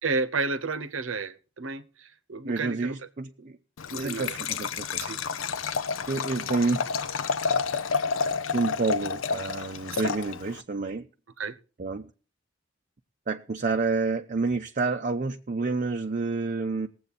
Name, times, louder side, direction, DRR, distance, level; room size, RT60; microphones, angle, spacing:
voice 1, 0.0-3.0 3.4-3.5 3.9-4.4 5.0-5.2 9.9-10.1 11.4-11.6, right 4 dB, 80° right, 0.8 m, -32 dB
voice 2, 2.5-3.6 4.0-5.0 6.1-6.9 8.5-11.1 11.8-12.1 13.3-16.9, right 3 dB, 40° right, 0.5 m, -29 dB
Liquid, 3.8-10.6, left 5 dB, 85° left, 0.6 m, -30 dB
19.5 x 7.8 x 4.1 m
head